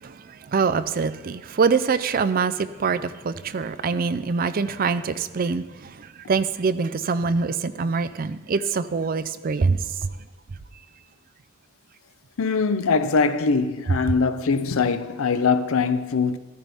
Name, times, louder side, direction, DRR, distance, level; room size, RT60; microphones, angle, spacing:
voice 1, 0.0-10.1, right 5 dB, 45° right, 0.4 m, -24 dB
voice 2, 12.4-16.4, left 4 dB, 80° left, 0.6 m, -22 dB
14.0 x 10.5 x 3.5 m
head